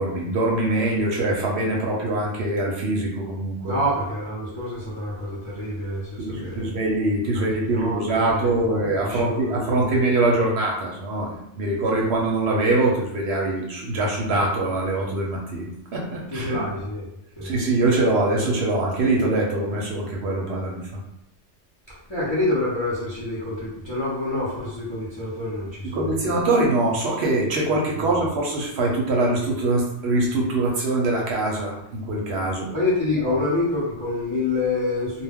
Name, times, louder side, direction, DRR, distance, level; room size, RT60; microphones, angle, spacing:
voice 1, 0.0-3.8 6.2-16.6 17.4-21.0 25.9-32.7 33.2-33.3, right 2 dB, 65° right, -2 dB, 0.8 m, -23 dB
voice 2, 3.6-6.7 7.3-7.4 7.7-10.0 16.3-17.0 17.4-17.5 21.9-26.3 27.9-28.2 32.7-35.2, left 2 dB, 30° left, -8 dB, 0.5 m, -27 dB
2.2 x 2.1 x 3.4 m, 0.81 s
omnidirectional pair, 1.3 m